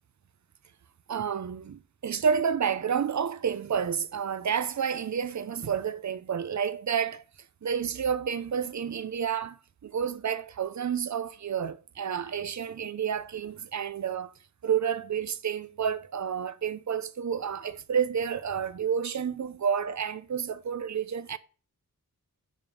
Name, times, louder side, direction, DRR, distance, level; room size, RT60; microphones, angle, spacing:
voice 1, 1.1-7.2 7.6-14.3 14.6-21.4, right 7 dB, 55° right, 0.7 m, -30 dB
9.4 x 5.2 x 5.4 m
wide cardioid pair, 135°, 34 cm